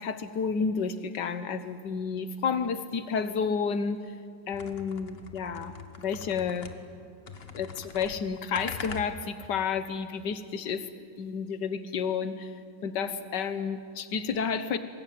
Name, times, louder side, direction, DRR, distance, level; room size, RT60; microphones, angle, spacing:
voice 1, 0.0-4.0 4.5-5.7 6.0-6.7 7.5-10.9 11.2-12.5 12.8-14.8, left 6 dB, 70° left, 11 dB, 1.7 m, -31 dB
sound 1, 4.5-7.0 7.3-9.5, left 5 dB, 35° left, 1.3 m, -43 dB
24.5 x 20.5 x 9.3 m, 2.3 s
omnidirectional pair, 2.0 m